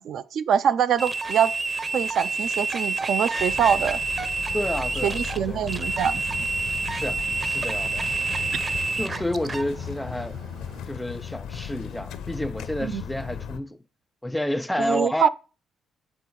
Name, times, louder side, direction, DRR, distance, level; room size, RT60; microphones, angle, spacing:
voice 1, 0.0-1.5 1.9-4.0 5.0-6.2 12.8-13.0 14.8-15.3, right 8 dB, 70° right, 0.4 m, -24 dB
sound 1, 1.0-9.7, right 3 dB, 30° right, 0.7 m, -28 dB
sound 2, 3.4-13.6, left 8 dB, 85° left, 0.7 m, -37 dB
voice 2, 4.5-5.2 5.5-5.7 6.9-8.1 9.0-10.4 10.9-13.8 14.2-15.3, left 1 dB, 5° left, 0.4 m, -30 dB
sound 3, 5.6-10.8, right 5 dB, 50° right, 1.3 m, -45 dB
7.5 x 5.4 x 4.6 m
cardioid pair, 90°, 0 cm